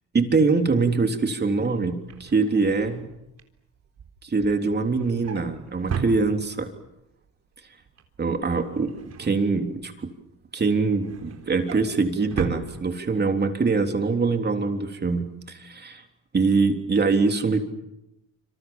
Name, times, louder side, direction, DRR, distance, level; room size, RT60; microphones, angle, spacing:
voice 1, 0.1-3.1 4.2-6.7 8.2-10.1 10.5-16.0 16.3-17.7, right 4 dB, 35° right, 5 dB, 3.6 m, -23 dB
Drawer open or close, 1.8-6.8 7.2-7.5 7.8-10.0 10.4-13.4 13.8-14.0 14.2-14.3, right 6 dB, 60° right, 3.8 m, -37 dB
26.5 x 26.0 x 7.3 m, 0.88 s
cardioid pair, 90°, 30 cm